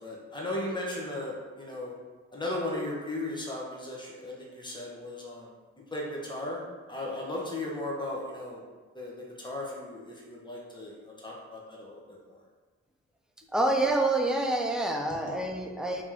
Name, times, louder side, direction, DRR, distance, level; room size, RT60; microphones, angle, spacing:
voice 1, 0.0-1.9 2.3-5.5 5.9-6.6 6.9-8.6 8.9-9.1 9.4-10.9 11.2-12.2, left 1 dB, 15° left, -3 dB, 1.1 m, -36 dB
voice 2, 13.5-16.0, right 2 dB, ahead, 2 dB, 0.5 m, -27 dB
3.0 x 2.9 x 3.7 m, 1.3 s
cardioid pair, 50°, 30 cm